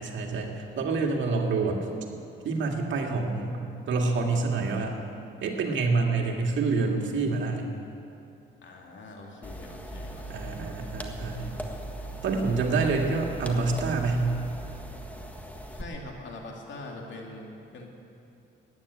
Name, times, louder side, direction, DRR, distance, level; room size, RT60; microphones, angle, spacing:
voice 1, 0.0-1.8 2.4-3.6 3.9-5.0 5.4-7.6 10.3-11.6 12.2-14.3, right 3 dB, 70° right, 1 dB, 2.1 m, -27 dB
voice 2, 8.6-10.6 15.7-17.9, left 2 dB, 70° left, 0 dB, 2.7 m, -43 dB
sound 1, 9.4-15.8, right 1 dB, 5° left, 1.6 m, -39 dB
13.5 x 9.6 x 9.3 m, 2.7 s
cardioid pair, 90°, 20 cm